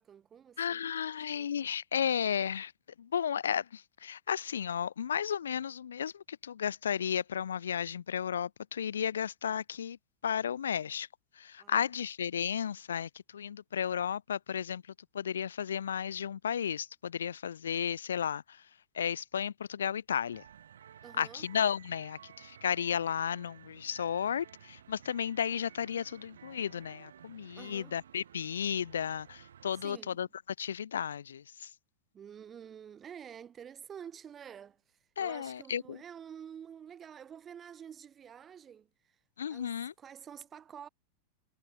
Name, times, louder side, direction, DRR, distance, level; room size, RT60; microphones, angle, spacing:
voice 1, 0.0-0.9 1.3-1.5 11.6-11.9 21.0-21.5 27.6-28.0 29.8-30.2 32.1-38.9 39.5-40.9, right 8 dB, 25° right, 2.9 m, -49 dB
voice 2, 0.6-2.7 3.0-10.0 10.2-11.1 11.4-14.8 15.1-18.6 18.9-20.4 21.2-30.3 30.6-31.7 35.2-36.0 39.4-39.9, left 8 dB, 65° left, 0.3 m, -33 dB
sound 1, 20.3-29.9, right 9 dB, 65° right, 6.6 m, -55 dB
figure-of-eight pair, 90°, 0 cm